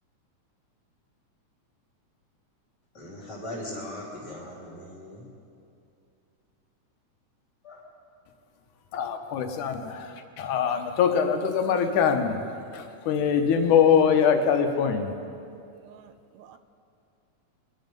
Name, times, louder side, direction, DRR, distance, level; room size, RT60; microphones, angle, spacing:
voice 1, 2.9-5.2 7.6-7.8, left 1 dB, 35° left, -4 dB, 3.1 m, -39 dB
voice 2, 8.9-12.4 12.7-15.1, left 7 dB, 85° left, 5 dB, 2.5 m, -23 dB
voice 3, 9.8-10.2 15.7-16.6, right 10 dB, 75° right, 9 dB, 1.9 m, -52 dB
24.5 x 11.0 x 5.3 m, 2.6 s
omnidirectional pair, 3.5 m